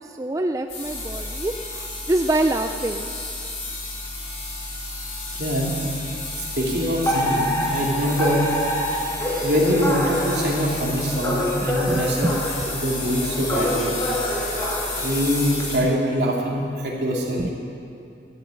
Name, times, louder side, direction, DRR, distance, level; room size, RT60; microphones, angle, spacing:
voice 1, 0.2-3.1 11.6-12.4 17.4-17.5, right 1 dB, 20° right, 6 dB, 0.4 m, -25 dB
sound 1, 0.7-15.8, left 2 dB, 40° left, 4.3 m, -32 dB
voice 2, 5.3-5.7 6.3-8.5 8.9-9.0 9.4-12.3 12.7-13.9 15.0-17.5, equal, 65° right, -2 dB, 2.6 m, -24 dB
Alarm, 7.0-15.6, equal, 15° left, 2.7 m, -27 dB
12.5 x 9.6 x 8.9 m, 2.6 s
head